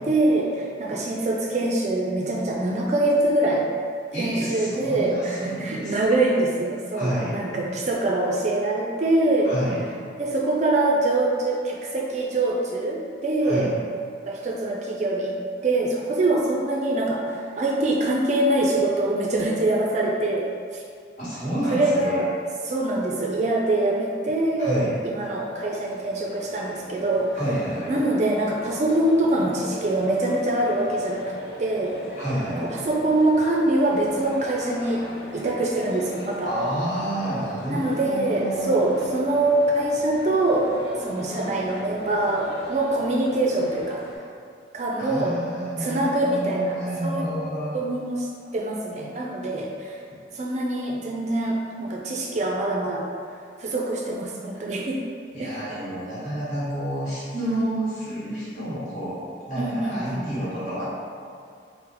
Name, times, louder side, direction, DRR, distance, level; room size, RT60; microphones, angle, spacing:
voice 1, 0.1-3.7 4.2-9.5 10.2-13.7 14.3-15.3 15.6-20.5 20.7-20.8 21.7-22.3 22.6-27.3 27.9-31.3 31.6-31.9 32.6-35.1 35.3-36.5 37.7-40.7 41.0-44.0 44.7-45.4 45.8-46.8 47.0-47.5 47.7-49.9 50.3-53.1 53.6-55.0 55.4-55.6 57.3-57.6 59.6-60.2, right 2 dB, 40° right, -2 dB, 0.4 m, -24 dB
voice 2, 4.1-6.0 6.9-7.4 9.4-9.8 13.4-13.7 21.2-22.2 24.6-24.9 27.4-27.9 32.1-32.7 36.4-38.7 45.0-47.7 55.3-59.2 59.5-60.9, right 1 dB, 45° left, -11 dB, 1.5 m, -29 dB
sound 1, 25.3-44.2, left 1 dB, 65° left, 0.7 m, -41 dB
3.8 x 2.1 x 4.2 m, 2.4 s
head